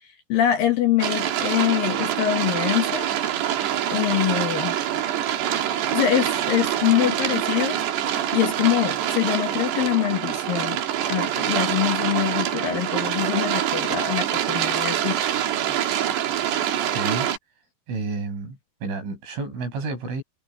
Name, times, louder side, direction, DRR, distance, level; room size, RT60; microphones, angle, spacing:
voice 1, 0.0-3.1 3.9-4.8 5.9-7.8 8.3-10.8 11.1-15.3, left 12 dB, 70° left, 2.3 m, -24 dB
sound 1, 1.0-17.4, right 11 dB, 65° right, 3.8 m, -25 dB
voice 2, 16.7-17.3 17.9-20.2, right 3 dB, 85° right, 9.4 m, -30 dB
omnidirectional pair, 5.4 m